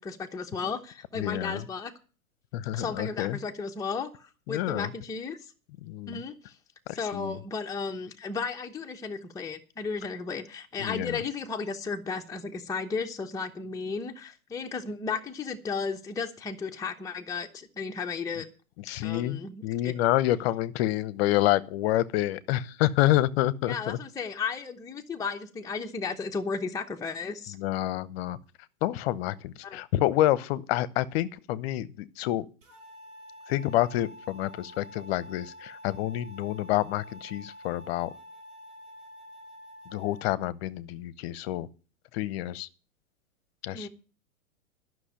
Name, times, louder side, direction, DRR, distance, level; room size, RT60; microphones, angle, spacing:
voice 1, 0.0-1.9 2.7-5.4 6.1-6.6 6.9-18.5 19.0-19.9 23.7-27.6 29.6-29.8 43.7-43.9, left 5 dB, 10° left, 1.0 m, -34 dB
voice 2, 1.1-1.6 2.5-3.4 4.5-4.9 5.8-6.2 6.9-7.4 10.8-11.2 18.8-24.0 27.5-28.4 28.8-32.5 33.5-38.1 39.9-41.7 42.1-42.7 43.6-43.9, left 14 dB, 45° left, 0.9 m, -28 dB
sound 1, 32.6-40.2, equal, 50° right, 6.0 m, -48 dB
12.5 x 6.2 x 8.7 m
hypercardioid pair, 115°, 42 cm